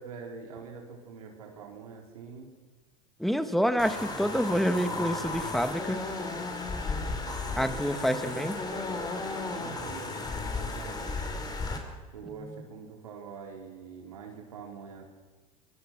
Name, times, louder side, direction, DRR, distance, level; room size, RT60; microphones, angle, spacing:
voice 1, 0.0-2.5 6.9-8.6 9.3-11.5 12.1-15.0, right 5 dB, 85° right, 1 dB, 4.4 m, -45 dB
voice 2, 3.2-6.0 7.5-8.5, equal, ahead, 9 dB, 2.1 m, -27 dB
sound 1, 3.8-11.8, left 3 dB, 20° left, 4.6 m, -34 dB
25.5 x 23.5 x 6.5 m, 1.3 s
hypercardioid pair, 90°, 18 cm